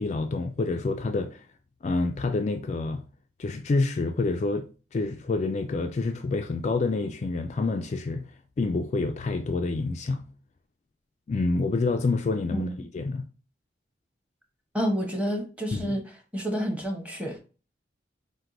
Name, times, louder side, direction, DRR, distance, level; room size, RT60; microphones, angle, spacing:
voice 1, 0.0-1.4 1.8-3.0 3.4-8.3 8.6-10.2 11.3-12.7 12.9-13.2 15.7-16.0, left 3 dB, 40° left, 0.3 m, -27 dB
voice 2, 14.7-16.0 16.3-17.4, equal, 10° right, 0.8 m, -29 dB
4.5 x 2.2 x 3.7 m
head